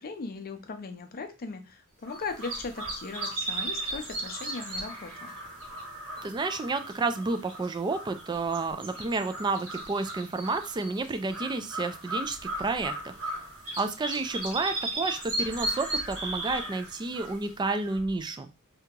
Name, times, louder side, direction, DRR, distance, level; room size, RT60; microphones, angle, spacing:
voice 1, 0.0-5.3, left 4 dB, 45° left, 7 dB, 0.5 m, -38 dB
sound 1, 2.0-18.1, right 2 dB, 70° right, 1.5 m, -36 dB
voice 2, 6.2-13.4 13.8-18.5, right 3 dB, 20° right, 9 dB, 0.3 m, -31 dB
2.8 x 2.8 x 3.6 m, 0.29 s
head